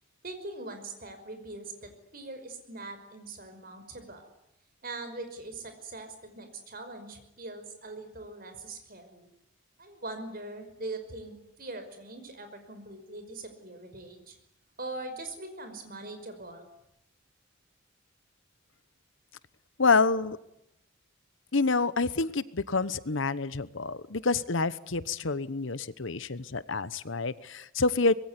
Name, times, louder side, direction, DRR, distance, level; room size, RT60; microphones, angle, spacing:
voice 1, 0.2-4.3 4.8-9.3 9.8-14.4 14.8-16.7, right 2 dB, 45° right, 7 dB, 5.5 m, -42 dB
voice 2, 19.8-20.4 21.5-28.1, left 3 dB, 65° left, 16 dB, 1.0 m, -27 dB
25.0 x 21.5 x 9.7 m, 0.82 s
head